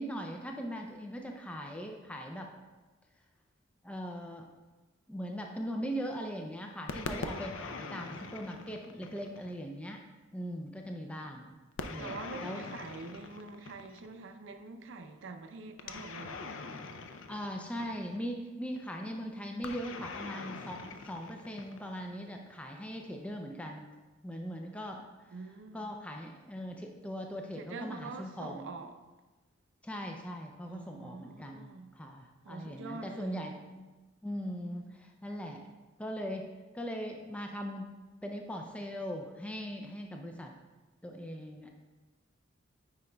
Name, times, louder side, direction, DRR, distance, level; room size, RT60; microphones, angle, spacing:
voice 1, 0.0-2.5 3.8-4.5 5.1-10.0 10.3-11.5 11.9-12.1 12.4-12.6 17.3-23.9 24.2-25.0 25.7-28.7 29.8-33.9 34.2-35.7 36.0-36.5 36.7-37.9 38.2-40.5 41.0-41.7, equal, 5° left, 0.4 m, -40 dB
sound 1, 6.9-9.5 11.8-14.1 15.8-18.2 19.6-22.1, left 4 dB, 70° left, 0.5 m, -42 dB
voice 2, 12.0-16.6 25.3-25.9 27.6-29.0 30.7-31.9 32.4-33.6 34.7-35.0, right 3 dB, 70° right, 0.5 m, -45 dB
9.1 x 4.8 x 2.2 m
head